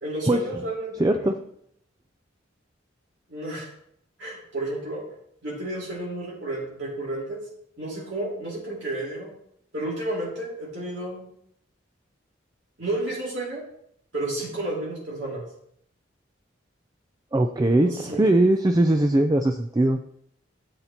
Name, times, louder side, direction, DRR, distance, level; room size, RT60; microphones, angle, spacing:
voice 1, 0.0-1.3 3.3-3.7 4.2-5.0 5.4-7.4 7.8-9.3 9.7-11.2 12.8-13.6 14.1-15.5 17.8-18.3, right 1 dB, 65° right, -6 dB, 2.6 m, -31 dB
voice 2, 1.0-1.3 17.3-20.0, right 1 dB, 20° right, 5 dB, 0.4 m, -20 dB
13.0 x 8.3 x 2.9 m, 0.72 s
head